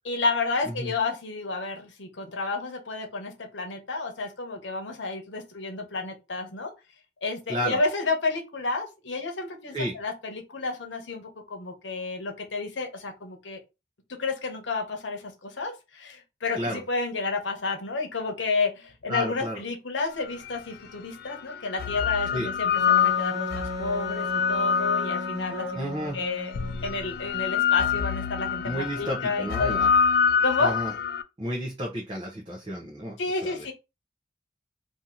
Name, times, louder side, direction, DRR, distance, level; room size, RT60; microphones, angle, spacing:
voice 1, 0.0-6.7 7.2-13.6 14.1-25.7 26.1-26.5 26.8-29.8 30.4-30.7 33.2-33.7, left 3 dB, 85° left, 1.0 m, -31 dB
voice 2, 7.5-7.8 9.7-9.9 16.6-16.8 19.1-19.6 22.3-22.5 25.7-26.2 28.6-29.9 30.6-30.9 31.4-33.6, equal, 25° right, 0.7 m, -31 dB
sound 1, 20.5-20.6 21.5-25.8 26.5-31.2, left 7 dB, 55° left, 0.3 m, -26 dB
Wind instrument woodwind instrument, 22.8-26.8, left 1 dB, 85° right, 1.2 m, -36 dB
2.8 x 2.6 x 3.7 m
head